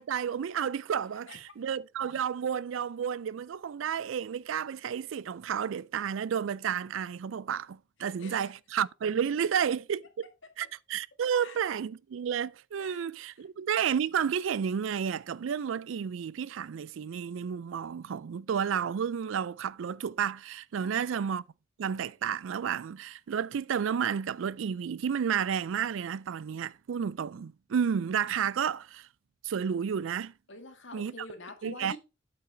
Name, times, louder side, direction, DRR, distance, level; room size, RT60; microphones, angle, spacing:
voice 1, 0.0-10.3 10.6-21.4 21.8-29.1 29.4-30.3 30.9-31.3 31.6-32.0, right 7 dB, 70° right, 0.4 m, -31 dB
voice 2, 8.2-8.5 9.4-9.5 11.4-11.6 12.8-13.0 20.8-21.1 27.3-27.5 30.5-32.0, left 3 dB, 60° left, 1.9 m, -46 dB
8.7 x 5.7 x 4.4 m
head